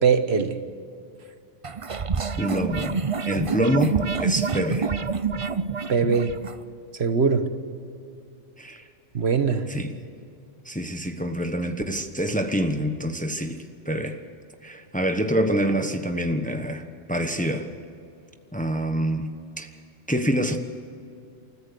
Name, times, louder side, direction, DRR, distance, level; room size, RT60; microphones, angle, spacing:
voice 1, 0.0-0.6 5.9-6.3 7.0-7.5 9.1-9.7, right 5 dB, 65° right, 8 dB, 1.5 m, -21 dB
sound 1, 1.6-6.6, right 5 dB, 35° right, 0.7 m, -27 dB
voice 2, 2.4-4.9 8.6-8.8 9.7-9.9 10.6-14.2 14.6-17.7 18.5-19.3 19.6-19.7 20.1-20.6, equal, 5° left, 6 dB, 1.1 m, -26 dB
29.0 x 14.0 x 6.8 m, 2.6 s
omnidirectional pair, 1.2 m